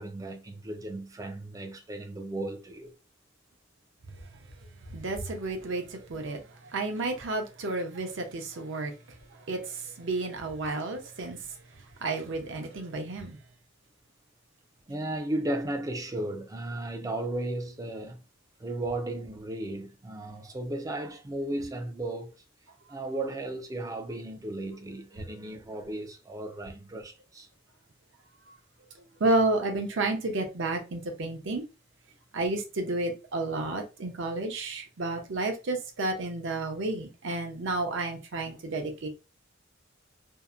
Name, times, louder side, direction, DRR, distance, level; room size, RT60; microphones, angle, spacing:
voice 1, 0.0-2.9 14.9-18.2 18.6-22.3 22.9-27.5, right 1 dB, 15° right, 0.4 m, -35 dB
voice 2, 4.9-6.4 6.7-8.9 9.5-11.4 12.0-13.4 29.2-31.6 32.3-39.1, right 2 dB, 65° right, 0.6 m, -31 dB
2.7 x 2.0 x 2.3 m
head